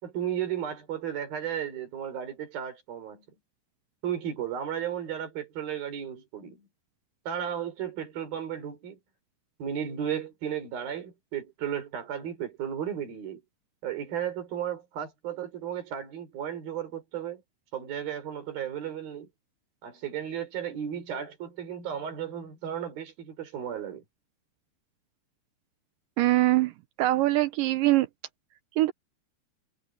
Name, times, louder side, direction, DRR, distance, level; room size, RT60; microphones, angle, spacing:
voice 1, 0.0-3.2 4.0-6.7 7.3-9.0 9.6-13.4 13.8-17.4 17.7-19.3 19.8-24.0, right 9 dB, 60° right, 6.1 m, -34 dB
voice 2, 26.2-26.7 27.0-28.1 28.8-28.9, right 17 dB, 90° right, 1.9 m, -22 dB
omnidirectional pair, 4.8 m